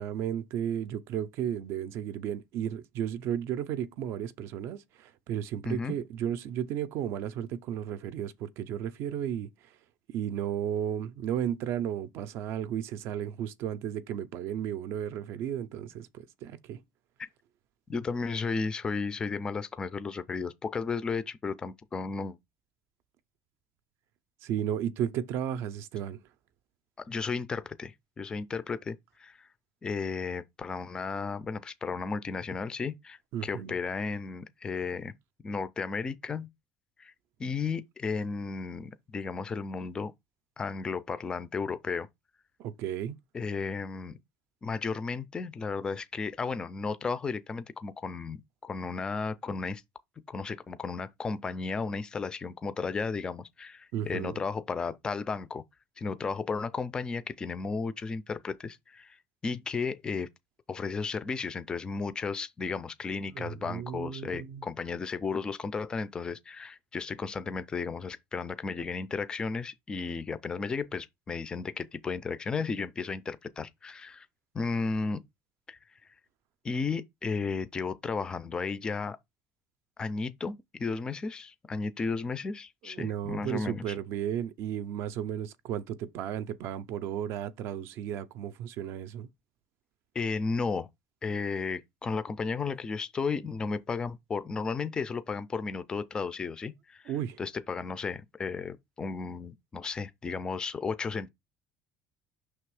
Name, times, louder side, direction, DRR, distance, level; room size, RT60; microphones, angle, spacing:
voice 1, 0.0-9.8 10.1-16.8 24.4-26.2 33.3-33.7 42.6-43.2 53.9-54.4 63.3-64.7 82.8-89.3 97.1-97.4, right 10 dB, 50° right, 0.4 m, -34 dB
voice 2, 17.9-22.4 27.0-29.5 29.8-35.1 35.4-36.5 37.0-37.1 37.4-40.1 40.6-42.1 43.3-44.2 44.6-49.8 50.3-55.6 56.0-59.2 59.4-60.3 60.7-74.3 74.5-75.2 75.7-75.8 76.6-79.2 80.0-83.9 90.1-90.9 91.2-97.1 97.4-101.3, left 4 dB, 15° left, 0.4 m, -34 dB
6.0 x 3.3 x 4.7 m
cardioid pair, 180°, 5 cm